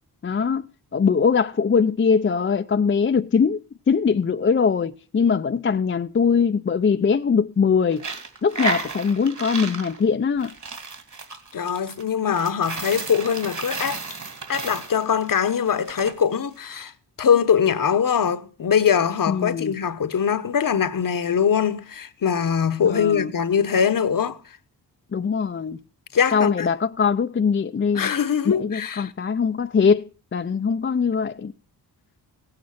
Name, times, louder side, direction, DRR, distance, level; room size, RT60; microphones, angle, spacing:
voice 1, 0.2-0.7 0.9-3.6 3.9-8.0 8.4-10.5 19.3-19.7 22.8-23.3 25.1-25.8 26.3-28.1 28.4-30.0 30.3-31.5, left 6 dB, 30° left, 0.6 m, -21 dB
Coin (dropping), 7.9-16.1, right 3 dB, 45° right, 2.6 m, -33 dB
voice 2, 11.5-14.0 14.5-16.9 17.2-24.4 26.1-26.7 27.9-29.1, left 7 dB, 55° left, 1.1 m, -22 dB
16.5 x 8.8 x 5.8 m
cardioid pair, 80°, 40 cm